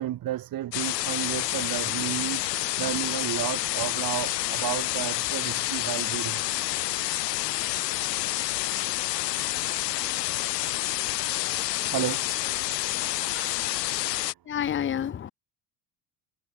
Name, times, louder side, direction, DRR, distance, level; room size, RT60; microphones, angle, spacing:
voice 1, 0.0-6.6 10.3-10.4 11.6-12.2 12.7-12.8 13.1-13.6 13.9-14.0, right 13 dB, 45° right, 1.5 m, -33 dB
sound 1, 0.7-14.3, left 17 dB, 90° left, 1.7 m, -29 dB
sound 2, 0.8-14.2, left 10 dB, 40° left, 2.7 m, -44 dB
voice 2, 14.5-15.3, left 9 dB, 25° left, 0.8 m, -28 dB
hypercardioid pair, 80°, 48 cm